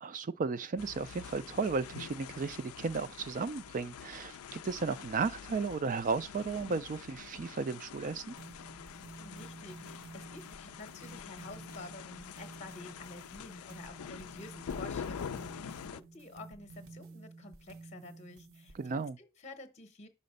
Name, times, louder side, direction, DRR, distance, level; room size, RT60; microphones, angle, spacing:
voice 1, 0.0-8.3 18.8-19.2, right 4 dB, 35° right, 0.3 m, -34 dB
sound 1, 0.8-16.0, left 7 dB, 70° left, 0.4 m, -46 dB
sound 2, 8.4-19.0, right 3 dB, 60° right, 0.7 m, -52 dB
voice 2, 9.2-20.1, left 2 dB, 30° left, 0.8 m, -50 dB
5.7 x 4.2 x 5.3 m
head